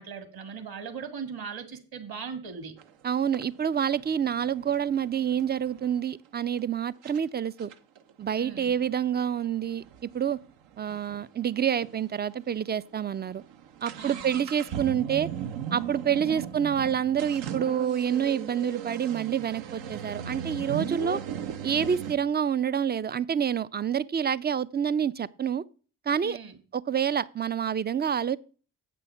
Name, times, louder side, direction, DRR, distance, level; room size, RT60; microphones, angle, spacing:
voice 1, 0.0-2.7 8.4-8.7 14.0-14.5 16.1-16.4 26.2-26.6, right 6 dB, 45° right, 1.9 m, -39 dB
sound 1, 2.8-2.9 3.3-6.0 6.6-6.7 7.0-7.2 7.6-11.3 11.5-11.6 11.8-11.9 12.5-12.7 13.0-22.1, right 8 dB, 65° right, 1.0 m, -37 dB
voice 2, 3.0-7.7 8.2-9.8 10.1-10.4 10.8-13.4 13.8-15.3 15.7-21.2 21.6-25.6 26.1-26.4 26.7-28.4, right 8 dB, 20° right, 0.4 m, -27 dB
8.1 x 6.2 x 5.6 m
hypercardioid pair, 40°, 48 cm